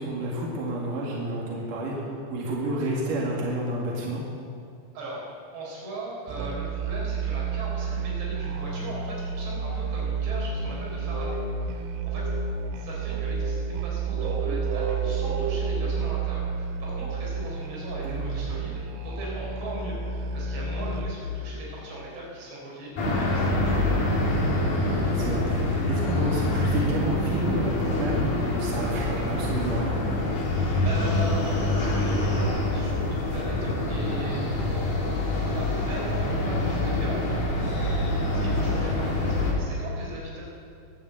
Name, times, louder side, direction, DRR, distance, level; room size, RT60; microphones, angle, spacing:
voice 1, 0.0-4.2 18.0-18.3 25.1-29.9 38.8-38.9, right 1 dB, 55° right, -3 dB, 3.3 m, -30 dB
voice 2, 5.5-12.3 12.8-22.9 23.2-23.7 30.8-40.4, right 1 dB, 70° right, -5 dB, 6.3 m, -39 dB
Musical instrument, 6.3-21.3, right 4 dB, 85° right, 3.3 m, -30 dB
sound 1, 23.0-39.5, left 2 dB, 55° left, 4.1 m, -25 dB
22.0 x 7.7 x 7.8 m, 2.3 s
omnidirectional pair, 5.2 m